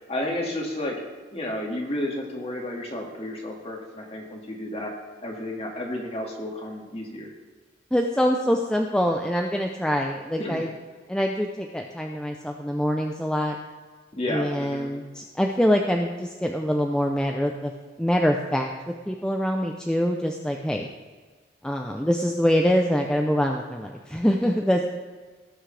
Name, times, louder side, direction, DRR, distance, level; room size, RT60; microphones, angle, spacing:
voice 1, 0.1-1.0 1.3-4.9 5.2-7.3 10.4-10.6 14.2-14.9, left 1 dB, 35° left, -1 dB, 2.1 m, -31 dB
voice 2, 7.9-10.7 11.1-13.6 14.3-17.7 18.0-18.7 19.1-20.9 21.6-24.9, equal, 5° left, 1 dB, 0.6 m, -24 dB
17.5 x 6.3 x 3.3 m, 1.4 s
head